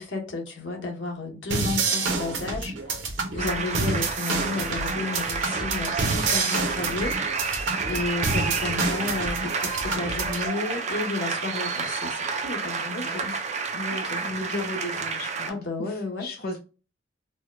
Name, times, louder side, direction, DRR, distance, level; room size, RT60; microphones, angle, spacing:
voice 1, 0.0-7.2 7.9-13.4 14.1-14.2 15.5-16.3, left 3 dB, 75° left, 1.0 m, -32 dB
sound 1, 1.5-10.5, right 4 dB, 85° right, 0.8 m, -28 dB
sound 2, 3.4-15.5, right 5 dB, 40° right, 0.5 m, -30 dB
voice 2, 7.7-8.0 12.8-13.4 13.7-15.5 15.8-16.6, left 2 dB, 55° left, 0.6 m, -36 dB
4.4 x 2.1 x 2.2 m
head